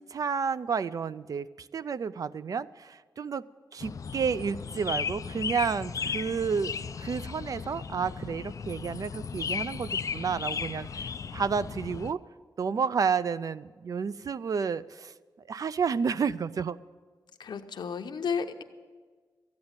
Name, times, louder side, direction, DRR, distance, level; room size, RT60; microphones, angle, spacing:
voice 1, 0.0-3.5 3.7-12.2 12.6-15.1 15.5-16.8, right 6 dB, 55° right, 15 dB, 0.4 m, -31 dB
sound 1, 3.8-12.1, left 6 dB, 50° left, 0.4 m, -36 dB
voice 2, 17.4-18.6, left 6 dB, 85° left, 7 dB, 0.8 m, -32 dB
14.0 x 9.5 x 8.8 m, 1.5 s
wide cardioid pair, 165°, 7 cm